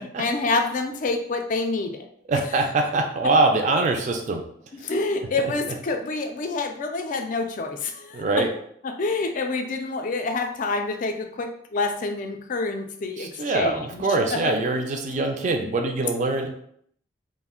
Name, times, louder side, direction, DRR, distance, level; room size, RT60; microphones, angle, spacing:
voice 1, 0.0-2.1 4.7-8.5 8.8-14.5 15.6-15.7, left 3 dB, 40° left, 5 dB, 0.3 m, -27 dB
voice 2, 2.3-4.4 8.1-8.5 13.2-16.5, right 3 dB, 40° right, 3 dB, 0.3 m, -23 dB
2.4 x 2.0 x 3.6 m, 0.68 s
head